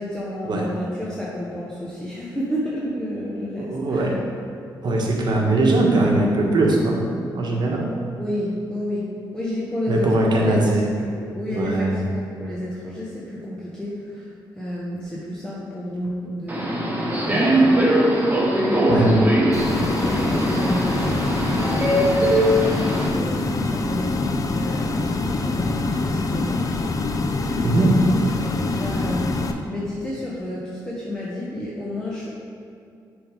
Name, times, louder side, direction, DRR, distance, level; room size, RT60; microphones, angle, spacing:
voice 1, 0.0-4.1 8.2-10.6 11.0-17.9 18.2-19.2 19.7-26.7 27.2-29.3 29.7-32.3, left 1 dB, 10° left, -7 dB, 1.1 m, -31 dB
voice 2, 3.6-4.2 4.8-7.0 7.3-7.9 9.9-10.8 11.5-11.9 18.9-19.2 27.6-28.0, right 2 dB, 60° right, -1 dB, 1.2 m, -20 dB
Subway metro underground, 16.5-23.1, right 1 dB, 20° right, 1.5 m, -21 dB
sound 1, 19.5-29.5, left 3 dB, 45° left, 0.5 m, -25 dB
6.8 x 3.6 x 5.1 m, 2.4 s
cardioid pair, 75°, 8 cm